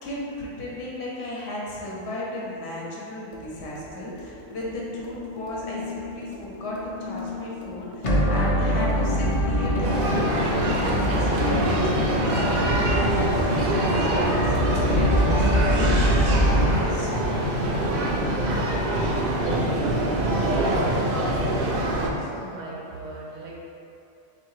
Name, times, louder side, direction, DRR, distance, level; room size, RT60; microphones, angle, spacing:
voice 1, 0.0-18.5, left 1 dB, 65° left, -4 dB, 1.0 m, -35 dB
sound 1, 3.3-16.7, equal, 40° left, 0.5 m, -25 dB
sound 2, 9.8-22.1, right 1 dB, 60° right, 0.7 m, -24 dB
voice 2, 22.1-23.5, right 2 dB, 80° right, -3 dB, 1.1 m, -39 dB
3.6 x 2.7 x 4.6 m, 2.7 s
omnidirectional pair, 1.2 m